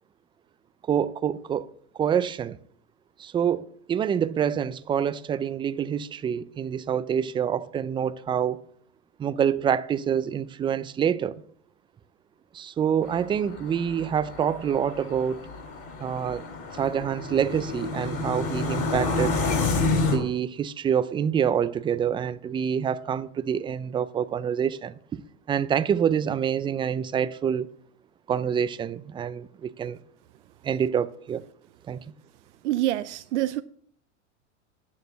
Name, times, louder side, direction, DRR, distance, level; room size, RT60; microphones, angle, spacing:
voice 1, 0.9-2.6 3.2-8.6 9.2-11.4 12.5-15.4 16.0-16.4 16.7-19.4 20.0-25.2 25.5-27.7 28.3-30.0 30.6-31.5 31.9-32.0, right 8 dB, 15° right, 0.3 m, -26 dB
sound 1, 13.0-20.2, left 3 dB, 40° left, 3.6 m, -29 dB
voice 2, 32.6-33.6, right 14 dB, 75° right, 0.6 m, -26 dB
9.4 x 6.4 x 7.4 m
hypercardioid pair, 115°, 36 cm